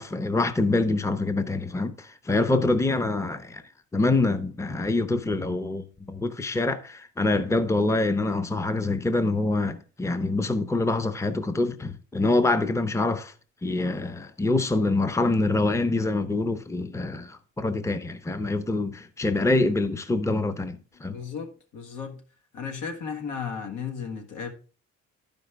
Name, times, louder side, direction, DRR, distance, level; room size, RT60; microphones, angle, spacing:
voice 1, 0.0-3.6 3.9-13.3 13.6-21.2, left 2 dB, 10° left, 0.7 m, -25 dB
voice 2, 21.1-22.2 22.5-24.5, left 6 dB, 85° left, 1.7 m, -35 dB
11.5 x 5.2 x 3.4 m
cardioid pair, 90°, 30 cm